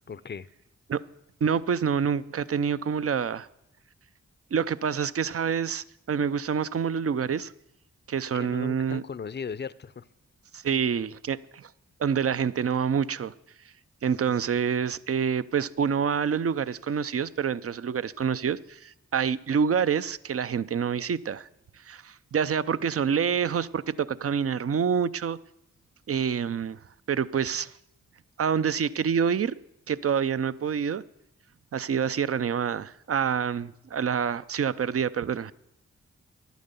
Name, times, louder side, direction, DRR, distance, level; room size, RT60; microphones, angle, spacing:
voice 1, 0.1-0.5 8.3-10.1 14.1-14.4, left 6 dB, 35° left, 18 dB, 0.6 m, -38 dB
voice 2, 1.4-3.5 4.5-7.5 8.1-9.0 10.5-11.7 12.0-13.3 14.0-21.5 21.8-25.4 26.1-26.8 27.1-27.7 28.4-29.5 29.9-31.0 31.7-35.5, right 7 dB, 45° right, 17 dB, 0.5 m, -27 dB
11.0 x 9.2 x 6.8 m, 0.80 s
cardioid pair, 40°, 31 cm